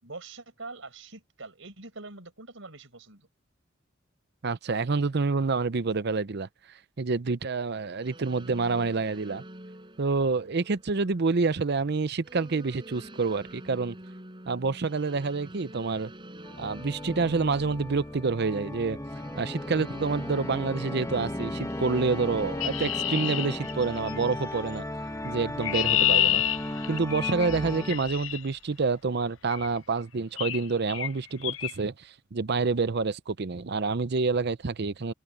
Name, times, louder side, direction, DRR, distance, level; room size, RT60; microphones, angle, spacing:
voice 1, 0.0-3.3, right 3 dB, 75° right, 5.3 m, -44 dB
voice 2, 4.4-6.5 7.0-9.4 10.0-14.0 14.5-16.1 16.6-19.0 19.4-24.8 25.2-26.4 26.9-35.1, right 4 dB, 55° right, 0.7 m, -28 dB
sound 1, 8.0-26.1, right 1 dB, 25° right, 7.6 m, -48 dB
Organ, 16.5-28.3, left 1 dB, 15° left, 1.0 m, -36 dB
Chirp tweet, 22.6-24.2 25.3-28.4 29.5-29.8 30.4-30.6 30.9-31.1 31.4-31.7, left 13 dB, 70° left, 0.6 m, -28 dB
head